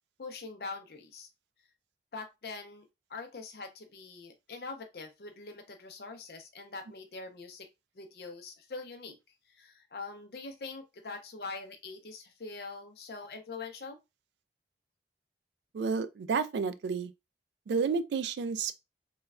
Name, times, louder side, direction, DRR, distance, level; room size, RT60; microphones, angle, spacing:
voice 1, 0.2-1.3 2.1-7.7 7.9-9.2 9.5-14.0, left 4 dB, 60° left, 0.6 m, -43 dB
voice 2, 15.7-17.1 17.7-18.8, right 5 dB, 75° right, 0.3 m, -31 dB
3.1 x 2.2 x 2.3 m
head